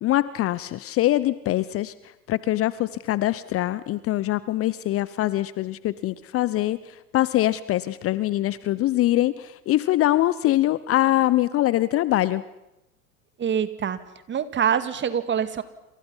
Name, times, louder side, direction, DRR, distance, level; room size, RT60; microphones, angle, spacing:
voice 1, 0.0-1.9 2.3-12.4, left 15 dB, 30° left, 17 dB, 0.8 m, -23 dB
voice 2, 13.4-14.0 14.3-15.6, right 8 dB, 25° right, 12 dB, 2.1 m, -25 dB
28.0 x 27.0 x 5.6 m, 0.92 s
hypercardioid pair, 90°, 45 cm